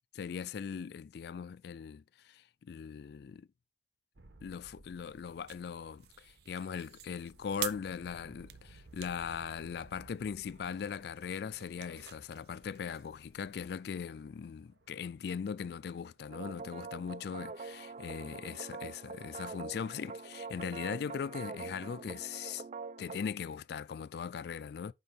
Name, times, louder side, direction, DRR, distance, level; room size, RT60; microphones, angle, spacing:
voice 1, 0.2-3.5 4.4-22.6 23.0-24.9, left 6 dB, 60° left, 0.3 m, -40 dB
sound 1, 4.1-17.8 18.1-18.2 18.6-19.5, right 2 dB, 80° right, 1.1 m, -60 dB
sound 2, 4.9-13.8, right 11 dB, 60° right, 0.8 m, -49 dB
sound 3, 16.3-23.2, right 4 dB, 40° right, 0.4 m, -44 dB
5.9 x 5.6 x 5.1 m
head